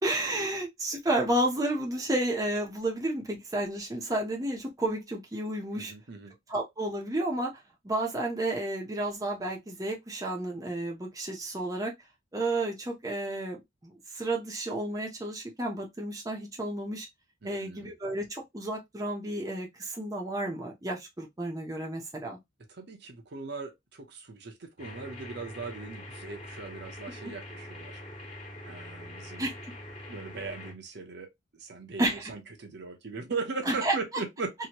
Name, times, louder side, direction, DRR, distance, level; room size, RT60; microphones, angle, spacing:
voice 1, 0.0-5.9 6.5-7.5 7.8-11.9 12.3-17.1 17.4-22.4 29.4-29.5 32.0-32.3 33.7-33.9, right 1 dB, 20° right, 0.7 m, -31 dB
voice 2, 5.7-6.3 17.4-17.9 22.7-28.0 28.6-29.5 30.1-34.5, right 4 dB, 60° right, 0.7 m, -39 dB
sound 1, 24.8-30.7, left 1 dB, 30° left, 1.2 m, -44 dB
2.9 x 2.7 x 2.9 m
head